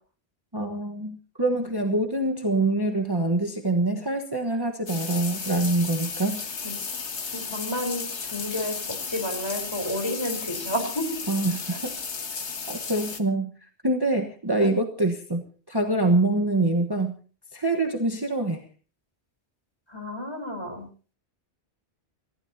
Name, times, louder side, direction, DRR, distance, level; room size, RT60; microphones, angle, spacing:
voice 1, 0.5-6.4 11.3-11.9 12.7-13.5 13.8-17.1 17.5-18.6, right 2 dB, 20° right, 3 dB, 1.3 m, -25 dB
sound 1, 4.9-13.2, left 5 dB, 80° left, 1.8 m, -34 dB
voice 2, 7.3-11.2 14.6-14.7 19.9-20.9, left 1 dB, 25° left, 5 dB, 4.0 m, -31 dB
29.0 x 15.5 x 2.8 m, 0.38 s
omnidirectional pair, 1.1 m